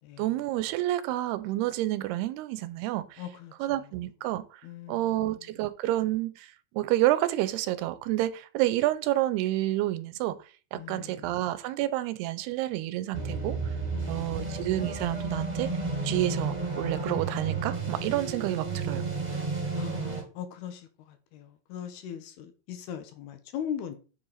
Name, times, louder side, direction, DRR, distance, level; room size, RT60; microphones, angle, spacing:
voice 1, 0.2-3.2 3.6-4.5 4.9-6.5 6.7-10.4 10.7-13.6 14.1-15.7 16.0-19.1, right 15 dB, 85° right, 2.7 m, -29 dB
voice 2, 3.2-3.9 4.6-5.4 10.7-11.4 13.9-14.7 19.7-24.0, left 9 dB, 80° left, 3.3 m, -40 dB
sound 1, 13.1-20.2, right 3 dB, 15° right, 1.9 m, -32 dB
8.8 x 7.7 x 4.2 m
omnidirectional pair, 4.6 m